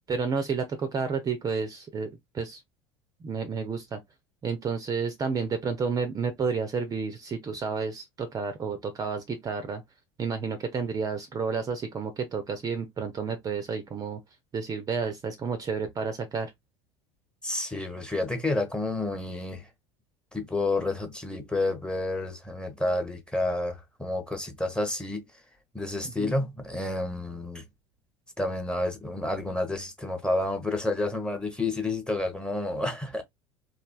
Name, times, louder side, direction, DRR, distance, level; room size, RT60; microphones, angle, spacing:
voice 1, 0.1-2.6 3.2-4.0 4.4-9.8 10.2-14.2 14.5-16.5 26.2-26.3, right 5 dB, 25° right, 0.5 m, -31 dB
voice 2, 17.4-19.7 20.3-25.2 25.7-27.6 28.4-33.2, left 2 dB, 5° left, 0.7 m, -30 dB
3.2 x 2.3 x 2.2 m
figure-of-eight pair, 70°, 15 cm